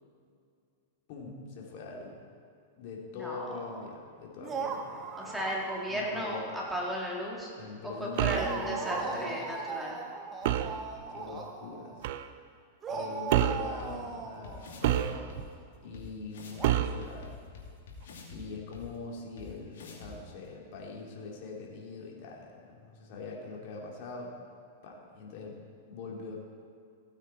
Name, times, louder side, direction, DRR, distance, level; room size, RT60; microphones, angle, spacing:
voice 1, 1.1-2.2 2.8-5.4 5.9-6.5 7.6-9.5 10.5-10.8 11.1-12.0 12.9-15.3 15.8-17.4 18.3-24.3 24.8-25.6 25.8-26.3, left 4 dB, 55° left, -1 dB, 2.5 m, -42 dB
voice 2, 3.1-3.8 5.2-7.5 7.8-10.0, equal, 5° right, -3 dB, 2.3 m, -35 dB
sound 1, 4.4-6.3 6.6-6.8 8.3-12.1 12.8-15.3 16.5-16.7, right 5 dB, 25° right, 1.2 m, -38 dB
sound 2, 8.2-8.6 10.4-10.8 12.0-12.3 13.3-13.7 14.8-15.5 16.6-17.1, right 12 dB, 60° right, 0.5 m, -28 dB
sound 3, 13.8-13.9 14.4-15.0 15.3-15.4 15.9-16.0 16.3-16.7 17.0-18.4 18.7-18.8 19.4-19.5 19.7-20.1, left 5 dB, 75° left, 2.6 m, -47 dB
16.0 x 8.9 x 4.4 m, 2.4 s
hypercardioid pair, 135°, 0 cm